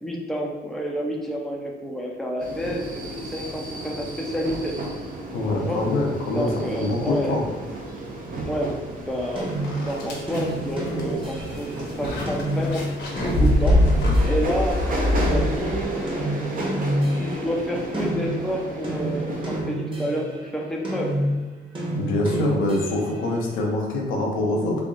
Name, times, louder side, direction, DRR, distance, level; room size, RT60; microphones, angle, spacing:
voice 1, 0.0-4.7 5.6-5.8 6.3-7.4 8.2-9.5 9.8-12.9 13.2-13.9 14.2-16.0 17.2-21.2, equal, ahead, -1 dB, 0.6 m, -29 dB
sound 1, 2.4-19.6, right 1 dB, 45° right, 0.8 m, -33 dB
voice 2, 5.3-6.5 6.8-7.4 22.0-24.8, left 2 dB, 85° left, -2 dB, 0.9 m, -24 dB
sound 2, 9.1-9.2 9.6-16.0, left 1 dB, 60° left, 1.0 m, -23 dB
sound 3, 9.4-14.7 15.2-20.5 20.8-23.2, right 1 dB, 25° right, 1.1 m, -29 dB
3.4 x 2.4 x 3.8 m, 1.2 s
cardioid pair, 90°, 20 cm